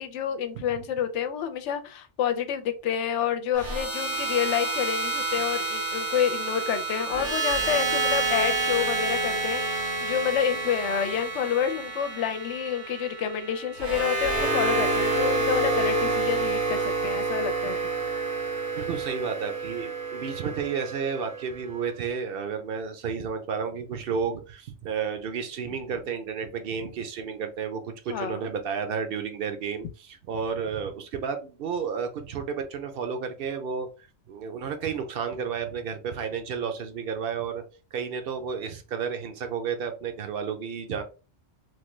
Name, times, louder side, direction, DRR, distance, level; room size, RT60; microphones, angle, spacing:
voice 1, 0.0-17.8 28.1-28.5, left 8 dB, 90° left, 0.9 m, -28 dB
sound 1, 3.6-21.7, right 3 dB, 85° right, 1.7 m, -28 dB
voice 2, 18.7-33.9 34.3-37.6 37.9-41.0, right 6 dB, 60° right, 0.7 m, -32 dB
3.1 x 2.2 x 3.1 m
omnidirectional pair, 1.2 m